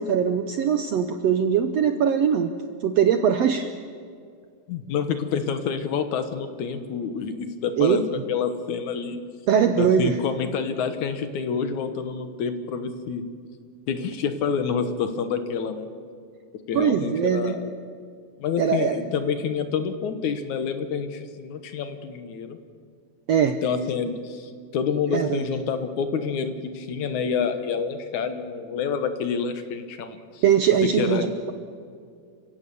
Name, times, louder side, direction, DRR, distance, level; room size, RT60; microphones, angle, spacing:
voice 1, 0.0-2.5 2.8-3.7 7.8-8.0 9.5-10.2 16.7-17.6 18.6-19.0 23.3-23.6 25.1-25.5 30.4-31.5, right 8 dB, 75° right, 8 dB, 1.5 m, -21 dB
voice 2, 4.7-8.0 8.3-9.2 9.8-13.2 13.9-15.9 16.7-17.6 18.4-22.6 23.6-30.4 30.8-31.3, left 6 dB, 65° left, 9 dB, 2.5 m, -28 dB
30.0 x 16.5 x 7.0 m, 2.3 s
omnidirectional pair, 3.9 m